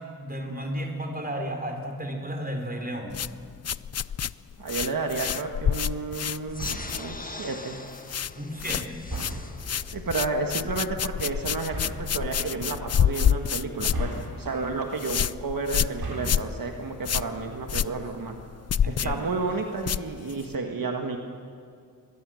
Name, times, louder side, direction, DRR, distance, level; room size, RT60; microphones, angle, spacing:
voice 1, 0.2-3.2 8.3-9.1 18.8-19.3, equal, 25° right, 3 dB, 4.0 m, -33 dB
sound 1, 3.1-7.5 7.7-8.3 8.6-20.6, left 8 dB, 45° left, 0.4 m, -28 dB
voice 2, 4.6-7.8 9.7-14.1 14.4-18.3 18.9-21.2, right 3 dB, 65° right, 3 dB, 1.7 m, -31 dB
sound 2, 6.5-11.5, left 2 dB, 20° left, 1.5 m, -42 dB
sound 3, 6.5-7.1 9.0-9.7 11.6-12.1 13.9-14.7 15.8-16.5, right 3 dB, 80° right, 4.4 m, -36 dB
23.5 x 21.0 x 6.4 m, 2.3 s
wide cardioid pair, 75°, 37 cm